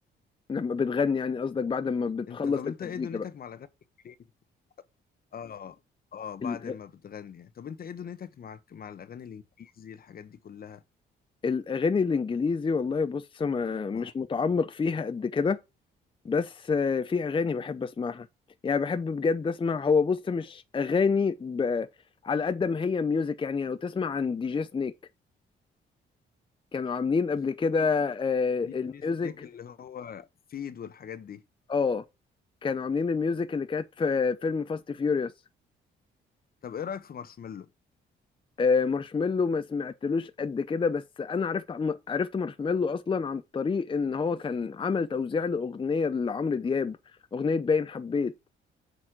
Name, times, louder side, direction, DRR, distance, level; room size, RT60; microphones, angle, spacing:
voice 1, 0.5-3.2 6.4-6.7 11.4-15.6 16.2-18.3 18.6-21.9 22.2-24.9 26.7-29.3 31.7-32.0 32.6-35.3 38.6-47.0 47.3-48.3, left 5 dB, 25° left, 0.6 m, -28 dB
voice 2, 2.3-3.7 4.0-4.2 5.3-5.8 6.1-10.8 13.9-14.1 27.8-27.9 28.6-31.4 36.6-37.7, left 8 dB, 50° left, 0.9 m, -41 dB
7.8 x 4.2 x 5.9 m
cardioid pair, 90°, 20 cm